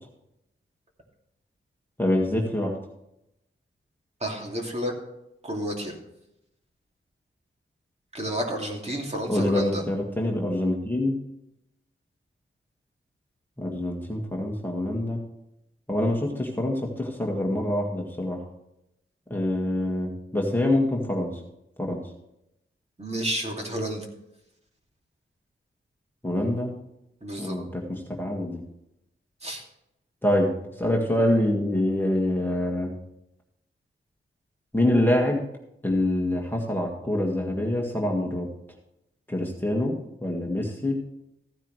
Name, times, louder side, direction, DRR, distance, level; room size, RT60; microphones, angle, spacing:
voice 1, 2.0-2.8 9.3-11.2 13.6-15.2 15.9-18.4 19.3-21.4 21.8-22.0 26.2-26.7 27.4-28.6 30.2-32.9 34.7-35.4 35.8-38.5 39.3-41.1, left 1 dB, 10° left, -1 dB, 1.8 m, -25 dB
voice 2, 4.2-4.9 5.4-5.9 8.1-9.8 23.0-24.1 27.2-27.6 29.4-29.6, equal, 30° right, 0 dB, 2.6 m, -31 dB
15.0 x 9.8 x 3.2 m, 0.84 s
wide cardioid pair, 105°, 21 cm